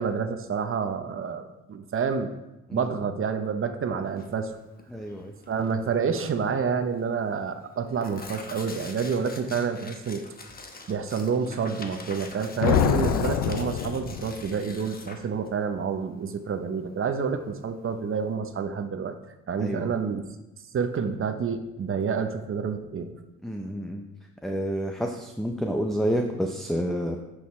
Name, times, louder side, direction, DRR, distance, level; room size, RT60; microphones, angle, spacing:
voice 1, 0.0-2.3 2.7-4.5 5.5-10.2 10.9-19.1 19.5-20.2 20.7-23.1, right 6 dB, 45° right, 8 dB, 0.8 m, -28 dB
Tearing, 4.1-18.3, left 3 dB, 30° left, 1.1 m, -45 dB
voice 2, 4.9-5.3 19.6-19.9 23.4-24.0 24.4-27.2, equal, ahead, 3 dB, 0.7 m, -29 dB
sound 1, 12.6-14.6, left 10 dB, 85° left, 0.5 m, -25 dB
9.1 x 6.4 x 3.2 m, 0.99 s
cardioid pair, 90°, 30 cm